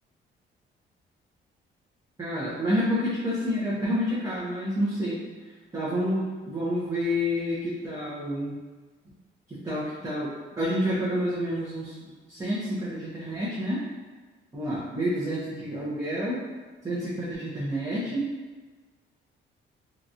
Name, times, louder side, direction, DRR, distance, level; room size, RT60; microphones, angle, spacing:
voice 1, 2.2-8.6 9.5-10.3 10.6-13.8 14.5-16.4 16.8-18.2, equal, 15° right, -9 dB, 0.8 m, -29 dB
2.9 x 2.4 x 2.7 m, 1.4 s
cardioid pair, 90°, 20 cm